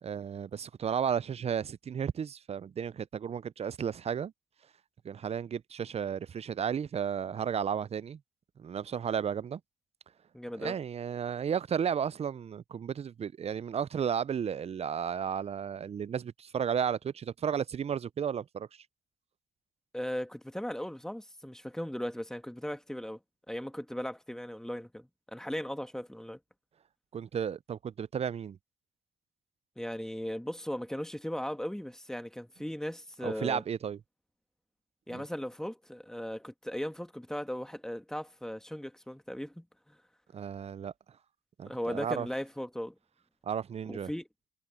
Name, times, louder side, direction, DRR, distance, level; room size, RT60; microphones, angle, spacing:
voice 1, 0.0-4.3 5.0-8.2 8.6-9.6 10.6-18.7 27.1-28.6 33.2-34.0 35.1-35.2 40.3-40.9 41.6-42.3 43.4-44.1, right 8 dB, 30° right, 0.4 m, -33 dB
voice 2, 10.3-10.8 19.9-23.2 23.5-26.4 29.7-33.6 35.1-40.0 41.7-42.9 43.9-44.3, equal, 5° left, 1.7 m, -37 dB
cardioid pair, 90°, 20 cm